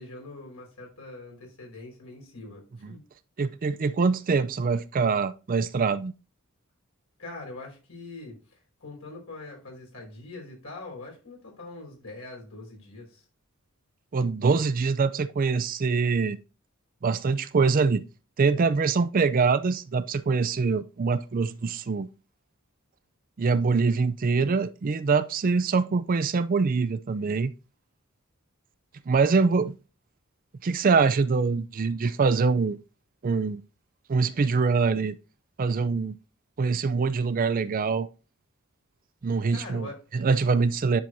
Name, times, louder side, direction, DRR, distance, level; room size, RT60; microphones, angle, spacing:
voice 1, 0.0-3.0 7.2-13.2 39.5-40.0, left 2 dB, 75° left, 4.7 m, -43 dB
voice 2, 3.4-6.1 14.1-16.4 17.0-18.0 18.4-22.1 23.4-27.5 29.1-29.7 30.6-32.8 33.2-33.6 34.1-35.2 35.6-36.2 36.6-38.1 39.2-41.0, right 4 dB, 40° right, 0.4 m, -24 dB
10.0 x 6.1 x 2.6 m
head